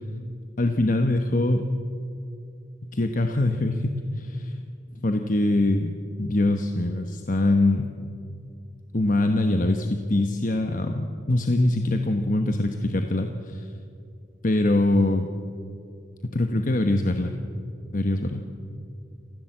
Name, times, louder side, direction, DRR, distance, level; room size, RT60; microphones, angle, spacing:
voice 1, 0.6-1.7 2.8-4.6 4.9-5.9 6.2-7.9 8.9-13.7 14.4-15.3 16.2-17.4 17.9-18.4, left 2 dB, 45° left, 6 dB, 1.1 m, -23 dB
29.0 x 15.5 x 7.7 m, 2.4 s
head